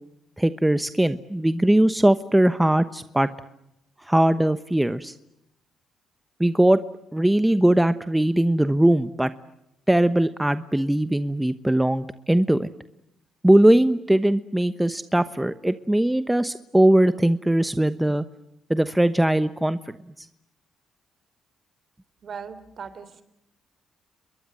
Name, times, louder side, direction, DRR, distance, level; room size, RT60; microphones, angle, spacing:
voice 1, 0.4-3.3 4.1-5.1 6.4-6.8 7.1-9.3 9.9-12.7 13.4-18.2 18.7-20.3, right 1 dB, 10° right, 12 dB, 1.1 m, -20 dB
voice 2, 22.2-23.2, right 6 dB, 50° right, 14 dB, 3.6 m, -38 dB
30.0 x 22.5 x 7.7 m, 0.83 s
cardioid pair, 90°, 0 cm